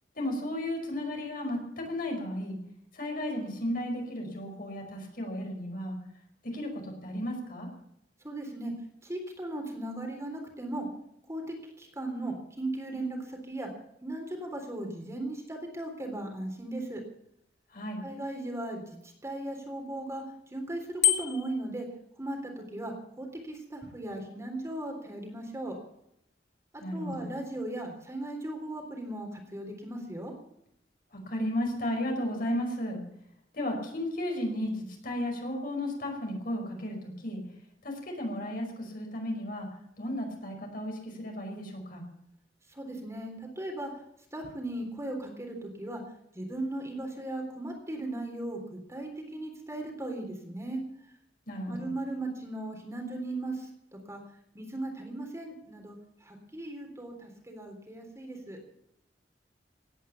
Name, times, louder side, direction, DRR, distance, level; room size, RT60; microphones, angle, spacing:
voice 1, 0.2-2.6 2.9-6.0 6.4-7.7 17.7-18.0 26.8-27.3 31.1-33.0 33.5-37.4 37.8-39.7 40.0-42.0 51.5-51.9, left 1 dB, 55° left, 2 dB, 5.2 m, -34 dB
voice 2, 8.2-8.7 9.0-10.9 11.3-13.7 14.0-17.0 18.0-21.9 22.2-25.8 26.7-30.3 42.7-44.0 44.3-46.0 46.3-50.8 51.7-53.7 54.1-54.2 54.5-56.0 56.2-58.6, right 1 dB, 15° right, 2 dB, 3.7 m, -37 dB
Bicycle bell, 21.0-21.6, left 10 dB, 75° left, 2.0 m, -26 dB
17.5 x 10.0 x 7.2 m, 0.76 s
head